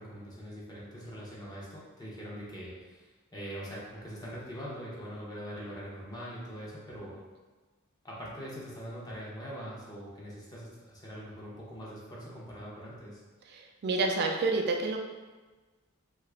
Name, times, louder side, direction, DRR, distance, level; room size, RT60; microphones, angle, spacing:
voice 1, 0.0-7.2 8.0-13.2, equal, 20° left, -6 dB, 0.6 m, -42 dB
voice 2, 13.5-15.0, right 3 dB, 50° right, 2 dB, 0.4 m, -29 dB
2.8 x 2.4 x 3.3 m, 1.3 s
head